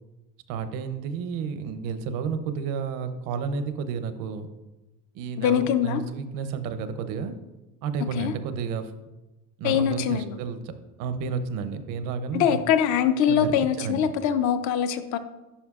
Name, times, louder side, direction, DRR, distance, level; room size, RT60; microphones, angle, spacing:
voice 1, 0.5-4.5 5.1-7.3 7.8-8.9 9.6-10.6 11.0-12.6 13.3-14.1, right 5 dB, 80° right, 10 dB, 0.7 m, -31 dB
voice 2, 5.4-6.0 8.2-8.3 9.6-10.4 12.3-15.2, left 9 dB, 65° left, 11 dB, 0.6 m, -23 dB
9.9 x 5.6 x 2.4 m, 1.1 s
cardioid pair, 165°, 32 cm